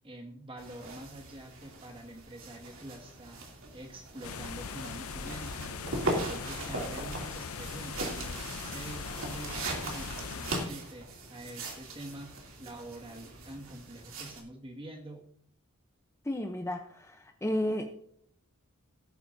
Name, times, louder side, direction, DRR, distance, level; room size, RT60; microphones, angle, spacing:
voice 1, 0.0-3.4 3.7-8.4 8.6-15.3, right 1 dB, 25° right, 1 dB, 1.9 m, -46 dB
sound 1, 0.6-14.4, right 2 dB, 65° right, 2.8 m, -39 dB
sound 2, 4.2-10.7, left 5 dB, 75° left, 0.7 m, -40 dB
voice 2, 16.2-17.9, left 1 dB, 15° left, 4 dB, 0.7 m, -32 dB
17.5 x 9.1 x 2.7 m, 0.66 s
head